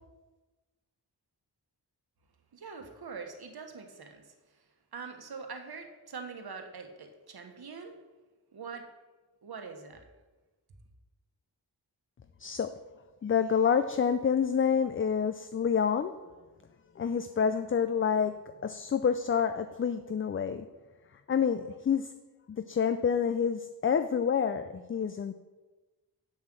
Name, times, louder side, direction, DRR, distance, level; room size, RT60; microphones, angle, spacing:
voice 1, 2.5-4.6 4.9-8.0 8.5-8.9 9.4-10.0, right 5 dB, 65° right, 5 dB, 1.3 m, -44 dB
voice 2, 12.4-12.7 13.2-16.1 17.0-18.3 18.6-20.7 21.3-22.1 22.5-25.3, left 7 dB, 30° left, 9 dB, 0.4 m, -28 dB
7.6 x 7.6 x 6.1 m, 1.2 s
wide cardioid pair, 135°, 41 cm